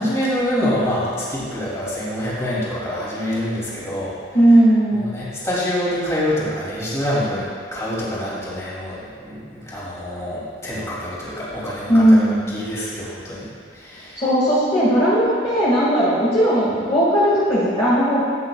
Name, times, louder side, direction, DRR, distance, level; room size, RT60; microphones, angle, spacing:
voice 1, 0.0-4.1 4.9-13.5 13.7-14.2, equal, 15° left, -8 dB, 2.8 m, -26 dB
voice 2, 4.3-5.0 11.9-12.5 14.2-18.2, equal, 30° left, -10 dB, 2.0 m, -17 dB
15.0 x 9.7 x 2.4 m, 2.2 s
head